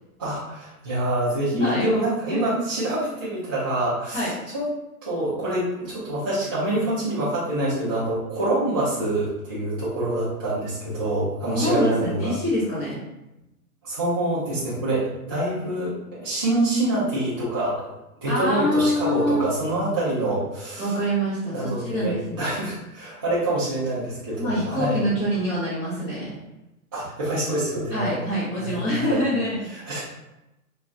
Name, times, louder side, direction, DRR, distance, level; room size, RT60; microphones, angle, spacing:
voice 1, 0.2-4.6 5.0-12.3 13.8-17.9 18.2-20.9 21.5-25.1 26.9-28.2 28.6-29.2 29.7-30.1, right 1 dB, 15° right, -11 dB, 0.4 m, -26 dB
voice 2, 1.5-1.9 2.3-2.6 4.1-4.3 11.5-13.0 18.3-19.4 20.8-22.5 24.4-26.3 27.9-29.7, left 1 dB, 20° left, -14 dB, 1.0 m, -25 dB
2.3 x 2.3 x 3.7 m, 0.93 s
hypercardioid pair, 135°, 46 cm